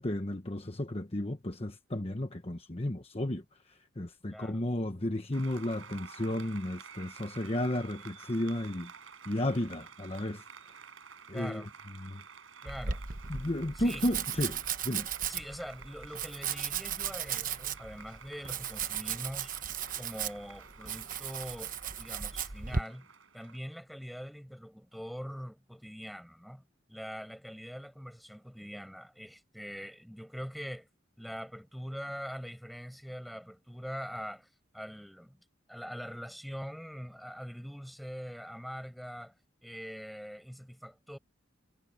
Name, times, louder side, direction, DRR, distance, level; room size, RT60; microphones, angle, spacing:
voice 1, 0.0-3.4 4.0-8.9 9.2-10.4 11.3-11.6 12.0-12.2 13.3-15.1, left 1 dB, 30° left, 1.2 m, -33 dB
voice 2, 4.3-4.7 11.3-11.7 12.6-13.0 13.7-14.1 14.3-14.5 15.3-19.5 20.0-30.9 31.2-35.4 35.7-39.3 39.6-41.2, equal, ahead, 6.2 m, -43 dB
Applause, 5.3-23.6, right 6 dB, 85° right, 5.2 m, -52 dB
Domestic sounds home sounds, 12.7-22.8, right 7 dB, 45° right, 1.1 m, -36 dB
head